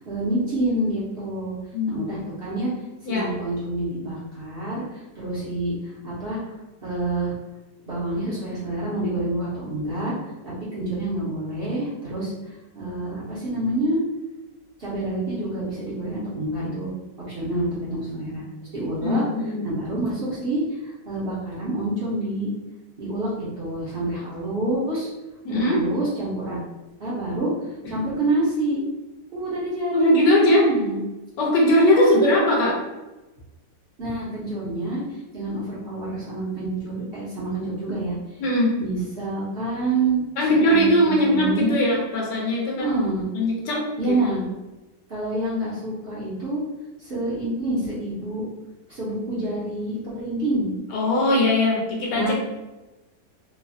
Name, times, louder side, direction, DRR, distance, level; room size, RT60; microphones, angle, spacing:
voice 1, 0.0-1.5 1.9-2.7 3.1-6.6 6.8-7.3 7.9-10.1 10.4-14.0 14.8-16.9 17.3-18.4 18.7-19.2 19.6-22.5 23.0-25.1 25.5-26.6 27.0-28.8 29.3-30.1 30.5-31.0 31.6-32.3 34.0-38.1 38.8-40.2 40.7-41.8 42.8-43.2 44.0-44.4 45.1-46.6 47.0-48.4 48.9-50.7 52.1-52.3, right 2 dB, 60° right, -8 dB, 0.6 m, -27 dB
voice 2, 1.7-2.1 3.1-3.3 19.0-20.0 25.4-25.8 29.9-30.7 31.4-32.8 38.4-38.7 40.4-43.0 43.3-43.8 50.9-52.3, left 1 dB, 80° left, -2 dB, 1.3 m, -20 dB
3.2 x 2.0 x 2.5 m, 1.1 s
omnidirectional pair, 1.9 m